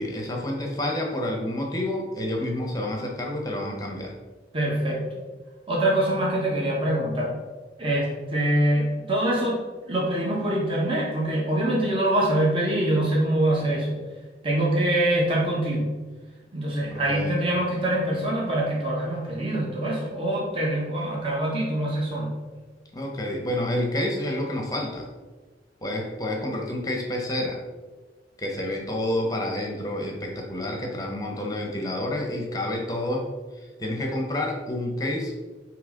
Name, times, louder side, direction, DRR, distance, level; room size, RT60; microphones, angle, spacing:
voice 1, 0.0-4.1 16.9-17.4 22.9-25.1 25.8-27.6 28.4-33.3 33.5-35.3, left 1 dB, 20° left, 1 dB, 0.8 m, -29 dB
voice 2, 4.5-5.0 5.7-7.3 7.8-9.6 9.9-14.0 14.4-15.8 16.5-22.3, right 1 dB, 30° right, -4 dB, 1.2 m, -24 dB
8.7 x 3.1 x 3.8 m, 1.3 s
head